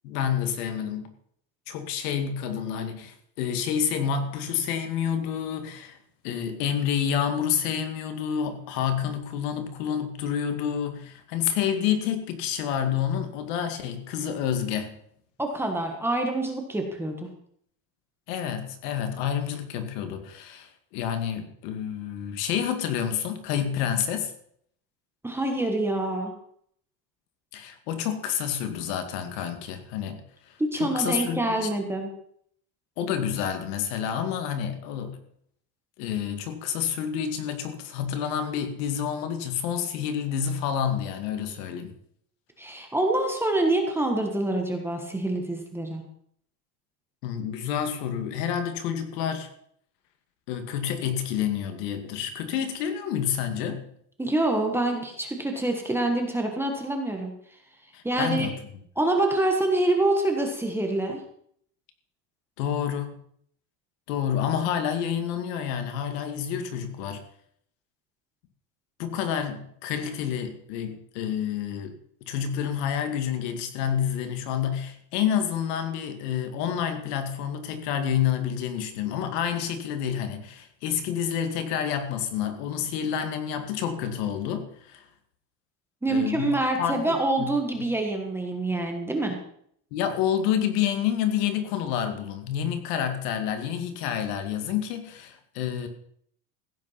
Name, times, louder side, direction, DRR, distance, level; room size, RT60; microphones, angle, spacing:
voice 1, 0.0-1.1 1.7-6.0 6.2-15.0 18.3-24.3 27.5-30.2 30.5-31.7 33.0-35.2 36.0-41.9 47.2-49.5 50.5-53.9 57.9-58.6 62.6-63.2 64.1-67.2 69.0-71.9 72.3-85.1 86.1-87.5 87.8-87.9 89.9-95.9, left 8 dB, 70° left, 8 dB, 2.3 m, -29 dB
voice 2, 15.4-17.3 25.2-26.3 30.7-32.1 42.6-46.0 54.2-57.3 58.0-58.5 59.0-61.2 86.0-89.3, right 2 dB, 5° right, 2 dB, 1.4 m, -26 dB
15.5 x 8.7 x 5.7 m, 0.66 s
cardioid pair, 175°, 50 cm